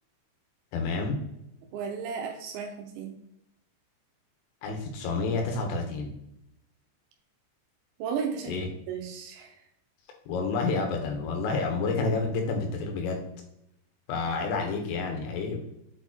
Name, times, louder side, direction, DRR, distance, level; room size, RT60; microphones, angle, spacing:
voice 1, 0.7-1.2 4.6-6.1 8.5-8.7 10.3-13.3 14.1-15.6, left 4 dB, 85° left, 2 dB, 3.7 m, -29 dB
voice 2, 1.7-3.1 8.0-9.5, right 6 dB, 85° right, 2 dB, 2.9 m, -34 dB
7.7 x 4.4 x 3.1 m, 0.81 s
omnidirectional pair, 5.7 m